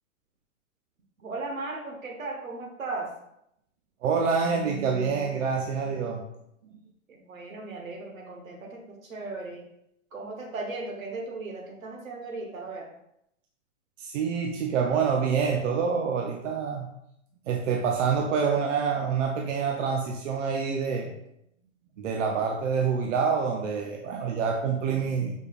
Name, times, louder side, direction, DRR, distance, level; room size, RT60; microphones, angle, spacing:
voice 1, 1.2-3.1 7.1-9.6 10.1-12.9, right 3 dB, 90° right, 1 dB, 1.3 m, -37 dB
voice 2, 4.0-6.2 14.0-16.9 17.5-21.1 22.0-25.3, right 6 dB, 70° right, 2 dB, 0.7 m, -27 dB
5.2 x 3.3 x 2.4 m, 0.78 s
hypercardioid pair, 135°, 39 cm